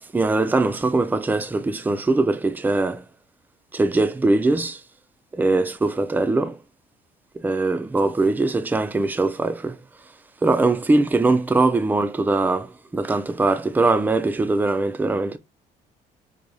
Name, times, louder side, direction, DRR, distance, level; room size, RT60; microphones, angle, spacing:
voice 1, 0.0-3.0 3.7-4.8 5.3-6.6 7.4-9.8 10.4-15.4, right 2 dB, 10° right, 0.5 m, -21 dB
4.1 x 2.7 x 4.7 m
cardioid pair, 110°, 17 cm